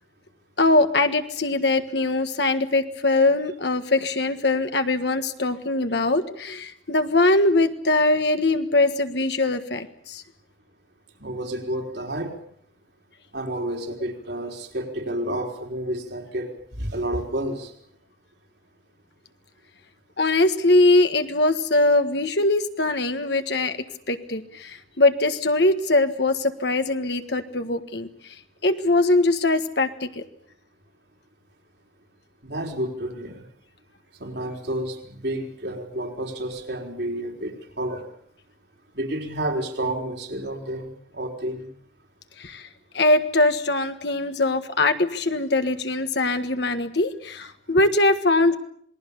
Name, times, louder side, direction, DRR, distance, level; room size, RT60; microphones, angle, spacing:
voice 1, 0.6-10.2 20.2-23.8 24.1-28.1 28.6-30.2 42.4-42.7 42.9-48.6, left 2 dB, 65° left, 8 dB, 1.5 m, -22 dB
voice 2, 11.2-12.3 13.3-17.7 32.4-33.5 34.2-38.0 38.9-41.7, right 1 dB, 60° right, 2 dB, 4.2 m, -30 dB
27.0 x 20.5 x 7.0 m, 0.66 s
head